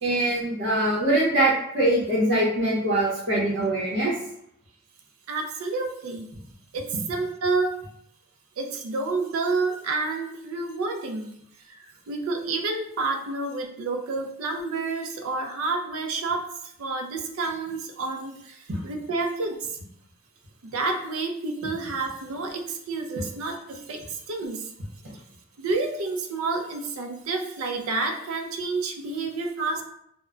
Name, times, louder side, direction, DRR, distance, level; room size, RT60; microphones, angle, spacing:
voice 1, 0.0-4.1 18.7-18.8, right 1 dB, 65° right, -7 dB, 0.8 m, -23 dB
voice 2, 5.3-6.3 6.7-7.8 8.6-11.4 11.6-19.8 20.6-24.7 25.6-29.8, right 3 dB, 90° right, 4 dB, 0.4 m, -29 dB
2.1 x 2.1 x 3.6 m, 0.72 s
head